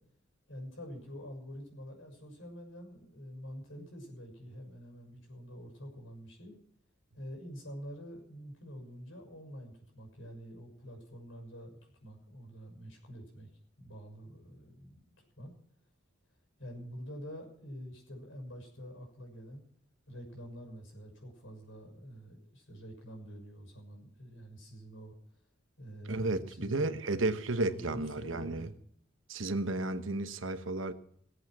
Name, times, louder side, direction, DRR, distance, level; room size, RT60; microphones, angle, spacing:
voice 1, 0.5-6.5 7.1-13.5 13.8-15.1 15.4-15.5 16.6-19.6 20.1-25.1 25.8-26.8 27.6-28.7, equal, 85° left, 6.4 m, -47 dB
voice 2, 26.1-28.7 29.3-30.9, right 2 dB, 90° right, 1.1 m, -33 dB
19.0 x 8.2 x 6.1 m
head